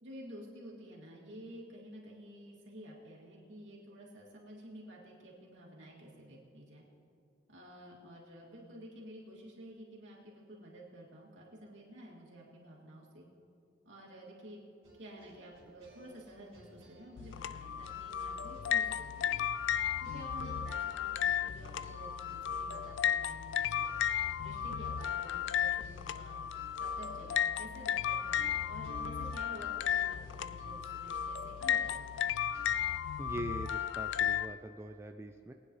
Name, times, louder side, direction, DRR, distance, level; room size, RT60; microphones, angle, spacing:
voice 1, 0.0-6.8 7.5-13.2 13.8-14.6 15.0-19.4 20.0-24.0 24.4-26.4 26.8-32.3, right 1 dB, 70° right, -4 dB, 2.7 m, -51 dB
sound 1, 14.8-32.9, right 1 dB, 30° right, 3.4 m, -58 dB
sound 2, 17.2-34.5, left 9 dB, 70° left, 0.3 m, -34 dB
voice 2, 33.2-35.5, right 1 dB, 15° right, 5 dB, 0.3 m, -42 dB
21.5 x 9.5 x 3.3 m, 2.3 s
head